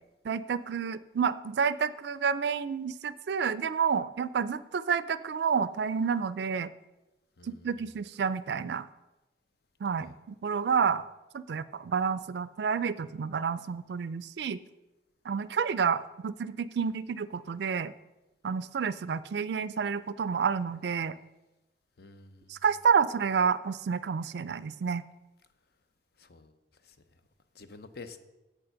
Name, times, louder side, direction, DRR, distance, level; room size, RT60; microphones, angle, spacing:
voice 1, 0.2-6.7 7.5-8.9 9.8-11.0 11.3-14.6 15.3-17.9 18.4-21.2 22.5-25.0, right 6 dB, 65° right, 17 dB, 0.4 m, -29 dB
voice 2, 7.4-7.7 10.0-10.1 22.0-22.6 26.2-26.5 26.8-27.0 27.5-28.2, left 3 dB, 55° left, 10 dB, 0.6 m, -49 dB
8.1 x 6.7 x 5.7 m, 1.0 s
head